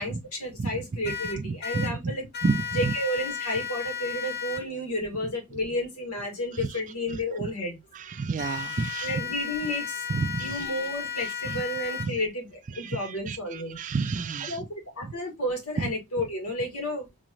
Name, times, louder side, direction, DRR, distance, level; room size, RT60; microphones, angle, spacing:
voice 1, 0.0-2.3 2.7-7.8 9.0-10.1 10.4-13.8 14.5-17.1, left 1 dB, 85° left, 1.8 m, -32 dB
sound 1, 1.0-1.9 2.3-4.6 8.4-12.1, left 8 dB, 45° left, 1.0 m, -34 dB
voice 2, 1.4-2.1 2.4-2.9 7.4-7.5 8.0-9.1 10.1-10.6 11.5-11.6 12.0-12.1 12.7-14.6 15.0-15.1 15.8-15.9, right 4 dB, 35° right, 0.3 m, -30 dB
4.1 x 2.9 x 2.4 m
head